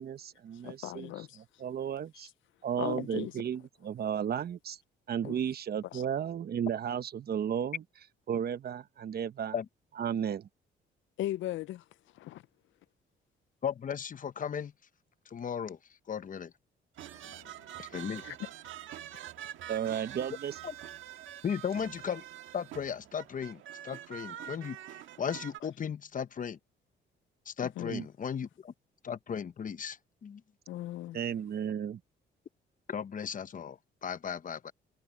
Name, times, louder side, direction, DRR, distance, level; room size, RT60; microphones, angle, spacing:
voice 1, 0.0-2.3 2.6-4.8 5.1-7.8 8.3-9.6 10.0-10.5 18.3-18.4 19.7-20.6 27.8-28.1 31.1-32.0, right 8 dB, 50° right, 1.0 m, -34 dB
voice 2, 0.6-1.4 2.8-3.3 5.2-5.4 5.9-6.0 11.2-11.8 12.1-12.4 17.2-17.5 18.2-18.5 27.6-27.9 30.7-31.2, left 14 dB, 75° left, 0.5 m, -38 dB
voice 3, 13.6-14.7 15.3-15.8 16.1-16.5 17.8-18.2 20.6-20.7 21.4-22.2 22.5-26.6 27.5-28.7 29.0-30.4 32.9-34.7, left 7 dB, 40° left, 0.9 m, -36 dB
sound 1, 17.0-25.6, right 11 dB, 80° right, 1.6 m, -46 dB
cardioid pair, 90°, 20 cm